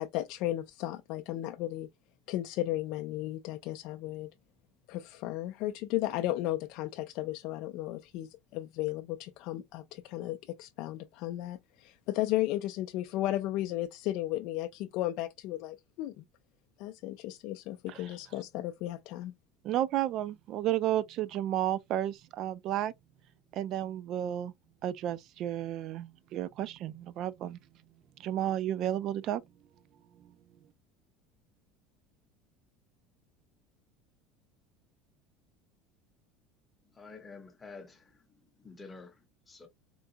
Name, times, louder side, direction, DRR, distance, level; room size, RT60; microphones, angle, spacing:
voice 1, 0.0-1.9 2.3-4.3 4.9-16.2 16.8-19.3, left 15 dB, 55° left, 0.3 m, -34 dB
voice 2, 19.6-22.9 23.5-24.5 24.8-27.6 28.2-29.4, right 12 dB, 45° right, 0.3 m, -32 dB
voice 3, 36.8-39.7, left 4 dB, 15° left, 0.8 m, -50 dB
3.7 x 2.2 x 2.6 m
cardioid pair, 150°, 0 cm